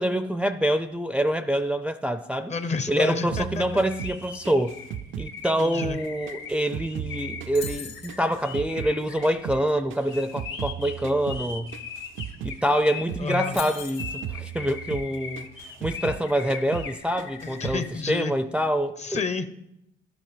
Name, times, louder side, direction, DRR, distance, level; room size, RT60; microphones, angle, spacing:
voice 1, 0.0-2.5 2.9-4.8 5.2-11.7 12.4-15.5 15.8-19.2, equal, 5° right, 0.4 m, -26 dB
voice 2, 2.5-3.8 5.6-6.0 13.2-13.6 17.4-18.3 19.0-19.5, left 4 dB, 35° left, 0.7 m, -30 dB
sound 1, 3.3-6.0 6.3-9.0 9.2-12.6 12.9-13.3 13.5-16.2 16.5-16.9 17.2-17.8, right 10 dB, 75° right, 0.5 m, -37 dB
sound 2, 3.6-17.9, left 6 dB, 90° left, 1.3 m, -40 dB
sound 3, 7.6-8.2 12.2-12.3 12.5-12.8 13.5-14.2, left 8 dB, 65° left, 1.6 m, -38 dB
11.5 x 8.4 x 5.0 m
cardioid pair, 90°, 20 cm